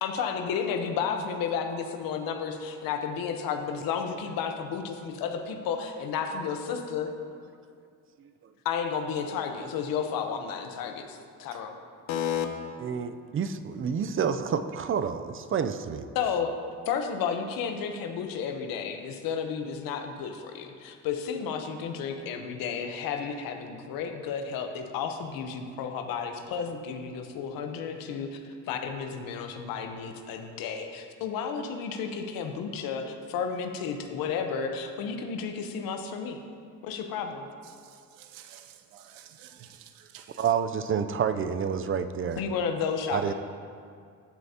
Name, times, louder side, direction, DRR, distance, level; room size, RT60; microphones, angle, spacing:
voice 1, 0.0-7.1 8.6-11.8 12.1-12.5 16.1-16.5 16.9-28.4 28.7-36.4 36.8-37.5 42.4-43.3, left 6 dB, 85° left, 5 dB, 0.9 m, -32 dB
voice 2, 12.8-16.1 40.4-42.4 43.1-43.3, right 7 dB, 40° right, 10 dB, 0.5 m, -29 dB
voice 3, 37.6-40.5, right 10 dB, 85° right, 7 dB, 0.7 m, -51 dB
13.0 x 7.7 x 2.8 m, 2.2 s
cardioid pair, 90°, 34 cm